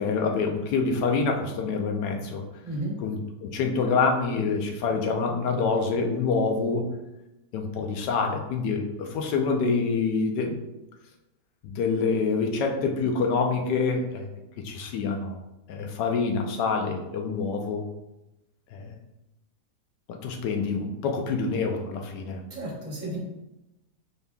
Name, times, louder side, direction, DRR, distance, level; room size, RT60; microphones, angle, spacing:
voice 1, 0.0-2.4 3.0-6.8 7.5-10.6 11.6-14.3 14.6-15.4 15.7-17.9 18.7-18.9 20.1-22.4, left 4 dB, 90° left, 3 dB, 1.3 m, -26 dB
voice 2, 2.6-3.0 22.5-23.3, right 1 dB, 50° right, -3 dB, 1.5 m, -33 dB
5.1 x 4.5 x 2.2 m, 0.94 s
omnidirectional pair, 1.8 m